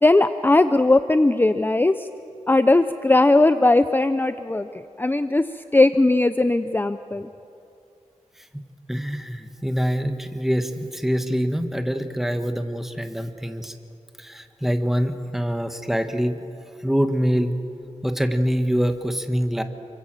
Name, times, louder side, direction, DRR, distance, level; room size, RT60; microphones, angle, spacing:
voice 1, 0.0-2.1 2.5-4.7 5.0-5.5 5.7-7.3, left 2 dB, 15° left, 10 dB, 0.6 m, -18 dB
voice 2, 8.9-13.7 14.2-16.4 16.8-17.5 18.0-19.6, equal, 5° right, 7 dB, 1.5 m, -24 dB
28.5 x 24.5 x 7.7 m, 2.6 s
wide cardioid pair, 105°, 13 cm